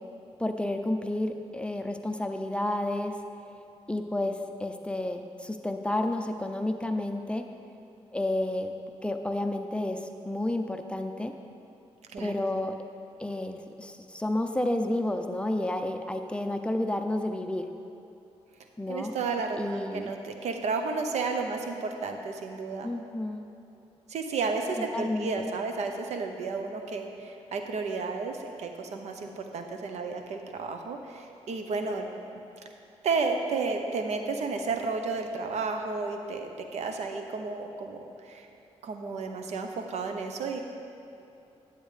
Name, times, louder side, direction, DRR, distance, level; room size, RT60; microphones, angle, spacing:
voice 1, 0.4-3.1 3.9-7.4 8.1-8.7 9.0-11.3 12.2-12.8 13.2-17.6 18.8-19.1 19.6-20.1 22.8-23.5 24.9-25.5, left 1 dB, 10° left, 6 dB, 0.5 m, -31 dB
voice 2, 12.1-12.4 18.9-22.9 24.1-32.1 32.3-32.4 33.0-38.5 38.8-40.6, right 4 dB, 80° right, 4 dB, 0.7 m, -32 dB
9.8 x 8.0 x 3.2 m, 2.8 s
cardioid pair, 75°, 11 cm